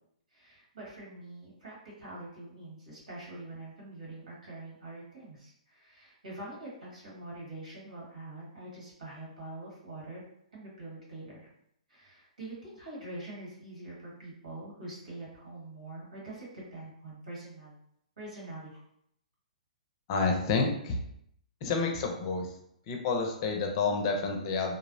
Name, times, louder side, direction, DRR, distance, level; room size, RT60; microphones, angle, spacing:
voice 1, 0.3-10.2 10.5-11.5 11.9-17.8 18.2-18.8, right 2 dB, 75° right, -6 dB, 1.5 m, -44 dB
voice 2, 20.1-21.0 21.6-22.5 22.9-24.8, left 4 dB, 40° left, 3 dB, 0.5 m, -29 dB
2.6 x 2.0 x 2.6 m, 0.72 s
hypercardioid pair, 125°, 4 cm